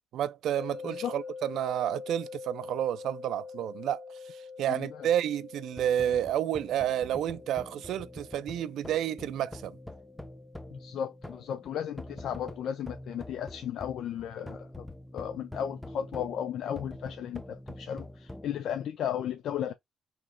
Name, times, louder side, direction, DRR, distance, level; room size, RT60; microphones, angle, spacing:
voice 1, 0.1-9.8, right 11 dB, 85° right, 0.3 m, -30 dB
sound 1, 0.6-13.6, left 5 dB, 40° left, 0.7 m, -46 dB
voice 2, 0.8-1.2 4.7-5.1 10.7-14.9 15.1-19.7, left 9 dB, 75° left, 0.4 m, -35 dB
sound 2, 5.7-18.5, left 1 dB, 5° left, 0.4 m, -45 dB
3.0 x 2.9 x 3.6 m
cardioid pair, 145°, 0 cm